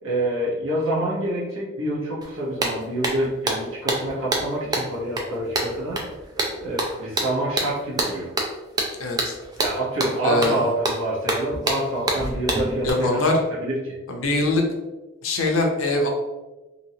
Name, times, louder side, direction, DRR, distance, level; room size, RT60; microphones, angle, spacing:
voice 1, 0.0-6.0 6.6-8.3 9.6-14.0, right 1 dB, 75° right, -5 dB, 1.0 m, -27 dB
sound 1, 2.2-2.3 2.6-12.9, right 2 dB, 20° right, 0.4 m, -27 dB
voice 2, 9.0-9.3 10.2-10.6 12.8-13.3 14.1-14.6 15.2-16.1, left 2 dB, 75° left, 2 dB, 0.6 m, -22 dB
2.9 x 2.7 x 2.7 m, 1.1 s
head